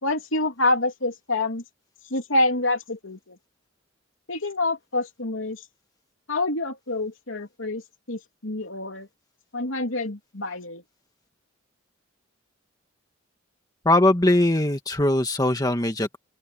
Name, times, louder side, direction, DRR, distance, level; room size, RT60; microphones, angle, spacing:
voice 1, 0.0-1.6 2.1-3.4 4.3-5.6 6.3-7.8 8.1-9.1 9.5-10.8, left 2 dB, 75° left, 3.1 m, -27 dB
voice 2, 13.9-16.2, left 1 dB, 20° left, 1.7 m, -21 dB
open air
head